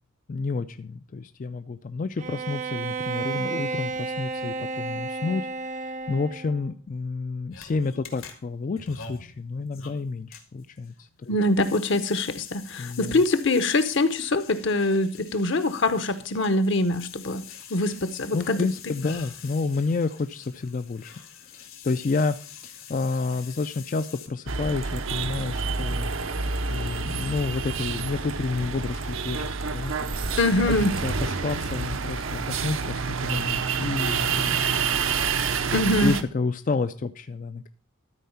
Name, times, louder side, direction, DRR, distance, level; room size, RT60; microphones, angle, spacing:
voice 1, 0.3-11.4 12.8-13.2 18.3-21.2 21.5-26.1 26.7-30.2 30.7-30.8 31.0-34.8 36.0-37.7, left 4 dB, 40° left, 10 dB, 0.3 m, -30 dB
Bowed string instrument, 2.2-6.6, right 4 dB, 35° right, 0.5 m, -32 dB
sound 1, 7.5-24.3, left 6 dB, 75° left, 1.7 m, -45 dB
voice 2, 11.3-17.4 17.7-18.6 30.4-30.9 35.7-36.1, left 2 dB, 55° left, 11 dB, 0.8 m, -23 dB
sound 2, 24.5-36.2, right 5 dB, 70° right, 0.7 m, -28 dB
13.0 x 4.6 x 5.6 m, 0.41 s
head